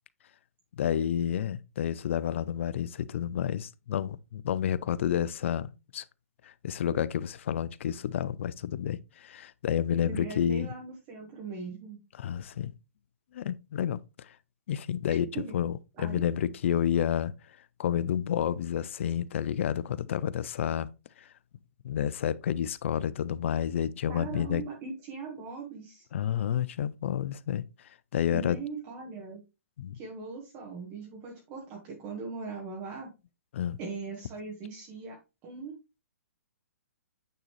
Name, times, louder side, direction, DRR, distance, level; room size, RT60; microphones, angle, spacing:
voice 1, 0.7-6.0 6.4-10.7 12.2-12.7 13.3-14.3 14.7-17.3 17.8-20.9 21.2-21.3 21.8-24.6 26.1-27.6 28.1-28.6 29.8-30.0 33.5-33.8, left 9 dB, 55° left, 0.5 m, -30 dB
voice 2, 10.0-12.0 15.1-15.6 16.0-16.2 24.1-26.1 28.3-29.4 29.9-33.1 33.8-35.2 35.4-35.7, right 4 dB, 30° right, 1.6 m, -40 dB
8.9 x 3.9 x 3.2 m
hypercardioid pair, 145°, 8 cm